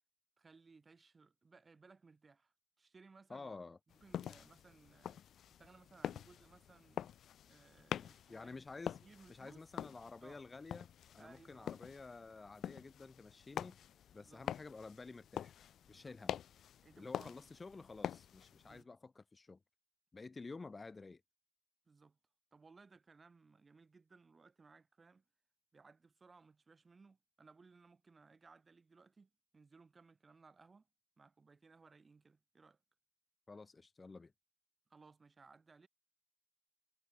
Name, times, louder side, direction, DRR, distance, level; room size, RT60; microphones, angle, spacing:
voice 1, 0.4-3.5 3.9-5.2 5.6-7.2 7.5-8.6 9.0-9.6 10.2-10.4 11.2-11.8 14.1-14.5 15.9-16.2 16.8-17.5 18.6-18.9 21.9-22.2 22.5-25.2 25.7-30.9 31.2-32.8 34.9-35.9, right 4 dB, 40° right, 6.7 m, -63 dB
voice 2, 3.3-3.8 8.3-9.0 9.3-13.8 14.1-15.5 15.9-16.4 16.9-19.6 20.1-21.2 33.5-34.3, left 3 dB, 35° left, 0.5 m, -51 dB
sound 1, 3.9-18.8, left 10 dB, 70° left, 0.7 m, -46 dB
hypercardioid pair, 45°, 0 cm